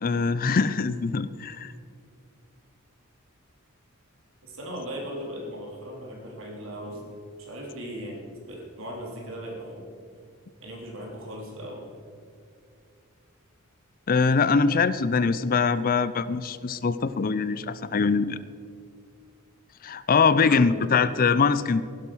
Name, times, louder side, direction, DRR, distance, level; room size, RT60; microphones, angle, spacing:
voice 1, 0.0-1.7 14.1-18.4 19.8-21.8, left 5 dB, 40° left, 15 dB, 0.5 m, -23 dB
voice 2, 4.4-7.1 7.4-9.8 10.6-11.9 20.2-20.7, equal, 65° right, 0 dB, 3.4 m, -38 dB
16.0 x 11.5 x 6.2 m, 2.3 s
head